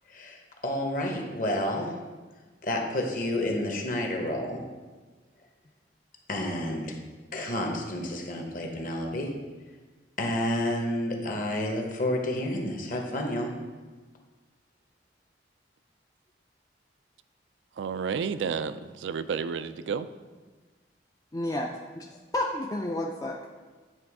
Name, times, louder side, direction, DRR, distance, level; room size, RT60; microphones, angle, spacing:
voice 1, 0.1-2.0 2.6-4.7 6.3-6.9 7.3-9.3 10.2-13.5, left 1 dB, 45° left, 2 dB, 1.0 m, -30 dB
voice 2, 17.8-20.1, right 6 dB, 85° right, 13 dB, 0.3 m, -31 dB
voice 3, 21.3-21.7 22.3-23.5, left 1 dB, 20° left, 0 dB, 0.3 m, -30 dB
9.0 x 3.4 x 4.8 m, 1.3 s
head